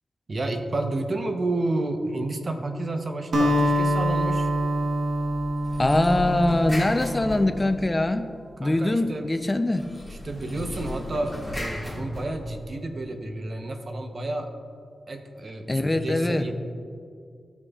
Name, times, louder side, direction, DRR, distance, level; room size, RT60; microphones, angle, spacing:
voice 1, 0.3-4.5 8.6-9.3 10.1-14.5 15.1-16.5, right 2 dB, 50° right, 5 dB, 0.9 m, -30 dB
Acoustic guitar, 3.3-7.8, equal, 75° right, 1.2 m, -25 dB
sound 1, 5.6-8.1 9.7-12.9, left 1 dB, 5° right, 1.9 m, -36 dB
voice 2, 5.8-8.3 8.6-9.9 15.7-16.4, left 1 dB, 25° left, 8 dB, 0.5 m, -23 dB
14.5 x 5.2 x 2.4 m, 2.4 s
cardioid pair, 55°, 0 cm